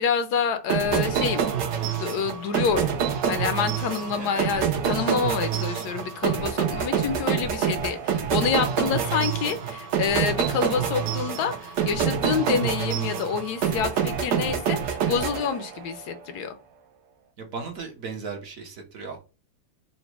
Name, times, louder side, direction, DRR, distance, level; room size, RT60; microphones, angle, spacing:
voice 1, 0.0-1.5 2.0-3.0 3.3-16.6, left 6 dB, 75° left, 9 dB, 1.1 m, -27 dB
sound 1, 0.7-16.0, right 8 dB, 85° right, 1.4 m, -26 dB
voice 2, 17.4-19.2, right 4 dB, 60° right, 3 dB, 1.1 m, -36 dB
4.0 x 2.1 x 4.5 m, 0.32 s
omnidirectional pair, 1.8 m